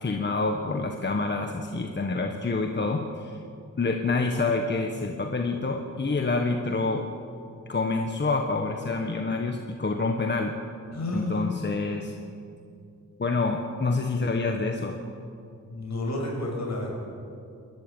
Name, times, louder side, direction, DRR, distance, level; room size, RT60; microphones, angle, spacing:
voice 1, 0.0-3.4 3.8-7.1 7.7-10.5 11.1-12.2 13.2-15.0, left 3 dB, 35° left, 3 dB, 1.4 m, -27 dB
voice 2, 10.9-11.5 15.7-17.0, left 1 dB, 60° left, -1 dB, 7.0 m, -30 dB
28.0 x 13.5 x 9.1 m, 2.5 s
wide cardioid pair, 140°, 31 cm